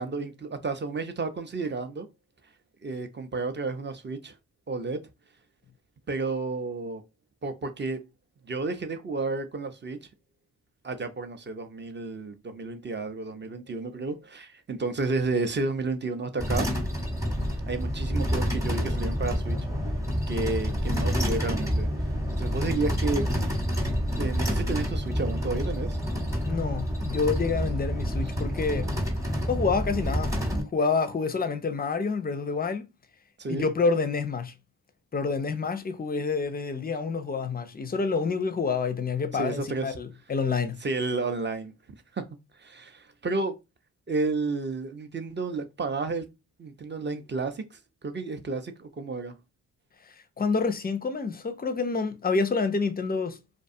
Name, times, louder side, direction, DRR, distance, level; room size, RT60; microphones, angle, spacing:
voice 1, 0.0-2.1 2.8-4.4 4.7-5.0 6.1-7.0 7.4-8.0 8.4-10.1 10.8-16.7 17.7-19.6 20.3-21.9 22.3-23.3 24.2-26.0 33.4-33.7 39.3-40.0 40.8-41.7 42.1-42.3 42.6-43.6 44.1-46.3 46.6-49.3, right 3 dB, 25° right, 0.5 m, -31 dB
sound 1, 16.4-30.6, equal, 10° right, 0.9 m, -28 dB
voice 2, 26.4-28.9 29.5-30.3 30.7-32.9 33.5-34.5 35.1-40.8 50.4-53.4, left 4 dB, 20° left, 0.5 m, -28 dB
2.5 x 2.3 x 2.6 m
supercardioid pair, 40°, 42 cm